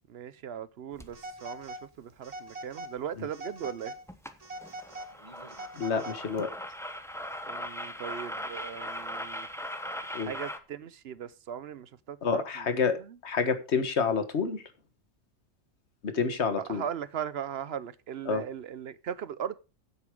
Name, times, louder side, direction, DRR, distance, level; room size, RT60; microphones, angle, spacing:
voice 1, 0.1-3.9 7.5-9.5 10.2-12.7 13.0-13.1 16.7-19.6, right 8 dB, 60° right, 0.8 m, -38 dB
sound 1, 1.0-1.2 3.6-3.7 4.1-4.3 4.6-10.6, equal, ahead, 0.8 m, -39 dB
Telephone, 1.1-1.9 2.2-2.9 3.3-4.0 4.4-6.4, right 1 dB, 30° right, 1.2 m, -42 dB
voice 2, 5.8-6.5 10.1-10.3 12.2-14.6 16.0-16.8 18.2-18.4, left 5 dB, 55° left, 1.7 m, -28 dB
9.9 x 8.1 x 5.1 m
omnidirectional pair, 1.4 m